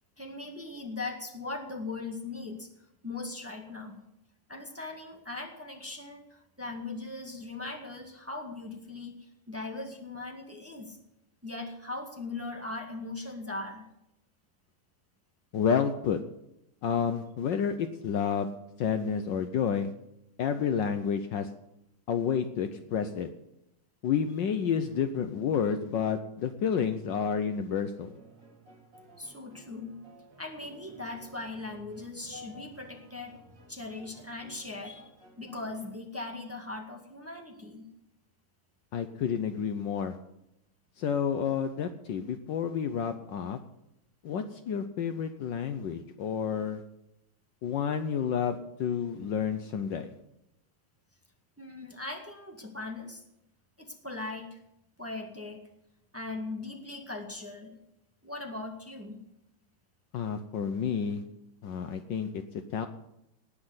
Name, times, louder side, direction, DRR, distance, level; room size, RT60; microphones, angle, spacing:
voice 1, 0.2-2.7 3.0-4.0 4.5-11.0 11.4-13.8 29.2-29.9 30.4-33.3 33.7-35.0 35.4-37.9 51.6-53.2 53.8-54.6 55.0-55.6 56.1-57.8 58.2-59.2, left 3 dB, 5° right, 2 dB, 1.5 m, -39 dB
voice 2, 15.5-16.2 16.8-18.5 18.8-19.9 20.4-21.5 22.1-23.3 24.0-28.1 38.9-40.1 41.0-43.6 44.2-46.8 47.6-50.1 60.1-61.2 61.6-62.4 62.7-62.9, left 7 dB, 70° left, 9 dB, 1.3 m, -30 dB
sound 1, 28.0-36.0, right 3 dB, 55° right, 3.1 m, -57 dB
18.5 x 6.2 x 7.9 m, 0.84 s
omnidirectional pair, 2.4 m